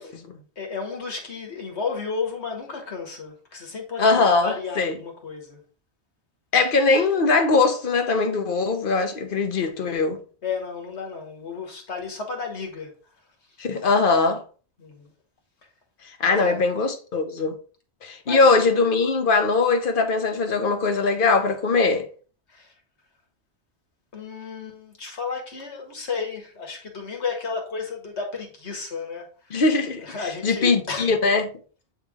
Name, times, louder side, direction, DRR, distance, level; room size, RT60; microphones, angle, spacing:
voice 1, 0.5-5.6 10.4-12.9 14.8-15.1 16.3-16.6 18.2-18.8 22.5-22.7 24.1-29.6 30.0-31.1, left 5 dB, 80° left, 1.9 m, -33 dB
voice 2, 4.0-4.9 6.5-10.2 13.6-14.4 16.2-17.6 18.0-22.1 29.5-30.1 30.4-31.5, left 4 dB, 50° left, 1.1 m, -21 dB
8.1 x 3.5 x 3.6 m
omnidirectional pair, 1.1 m